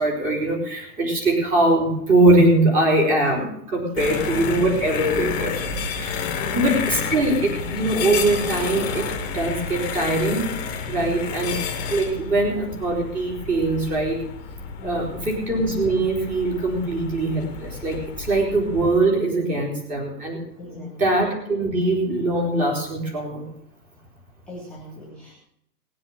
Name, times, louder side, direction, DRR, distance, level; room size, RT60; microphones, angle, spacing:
voice 1, 0.0-6.2 6.5-10.5 10.9-11.6 11.9-14.2 14.8-23.4, right 2 dB, 15° right, 0 dB, 4.4 m, -22 dB
sound 1, 4.0-19.0, left 5 dB, 20° left, 1.9 m, -30 dB
voice 2, 4.0-4.4 6.3-6.7 10.9-11.4 14.8-15.3 20.6-21.1 24.5-25.3, equal, ahead, -4 dB, 3.2 m, -39 dB
19.5 x 7.7 x 7.4 m, 0.72 s
hypercardioid pair, 165°, 48 cm